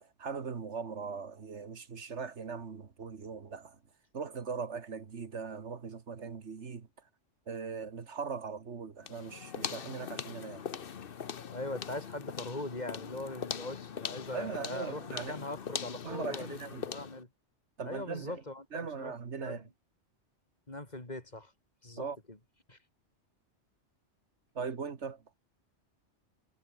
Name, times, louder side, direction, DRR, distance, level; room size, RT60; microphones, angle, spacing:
voice 1, 0.0-3.8 4.1-6.9 7.5-10.7 14.3-15.4 16.0-16.8 17.8-18.4 18.7-19.6 22.0-22.2 24.6-25.2, right 5 dB, 75° right, 1.8 m, -40 dB
sound 1, 9.0-17.2, left 7 dB, 55° left, 1.1 m, -41 dB
voice 2, 11.5-17.3 17.8-19.1 19.4-19.6 20.7-21.5 21.8-22.4 22.7-22.8, left 2 dB, 35° left, 3.4 m, -41 dB
omnidirectional pair, 1.2 m